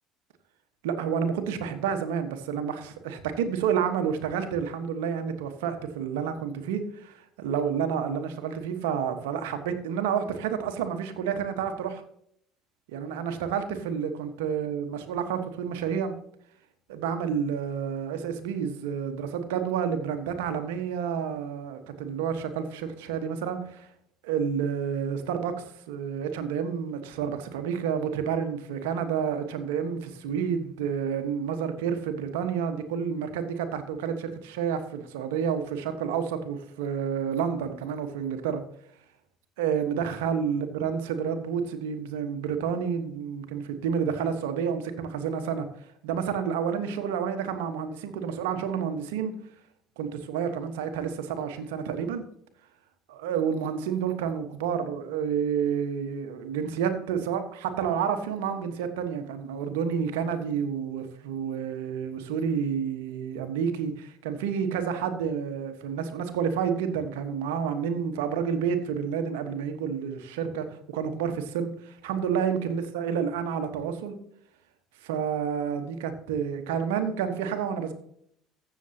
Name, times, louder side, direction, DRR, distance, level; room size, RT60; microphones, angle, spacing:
voice 1, 0.8-12.0 12.9-16.2 16.9-23.9 24.2-38.6 39.6-45.7 46.0-49.4 50.0-52.2 53.1-74.2 75.0-77.9, right 7 dB, 75° right, 8 dB, 1.3 m, -29 dB
15.0 x 7.1 x 2.9 m, 0.68 s
hypercardioid pair, 60°, 0 cm